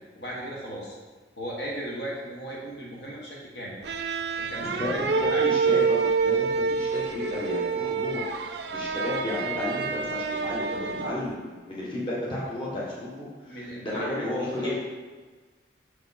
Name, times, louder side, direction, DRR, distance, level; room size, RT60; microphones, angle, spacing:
voice 1, 0.1-1.0 1.4-3.8 4.4-5.4 13.4-14.7, equal, 60° left, -4 dB, 1.4 m, -37 dB
Violin on D string From E to A, 3.8-11.3, right 5 dB, 65° right, 0.5 m, -27 dB
voice 2, 5.2-14.8, left 1 dB, 25° left, -7 dB, 1.5 m, -33 dB
6.2 x 4.8 x 4.2 m, 1.4 s
head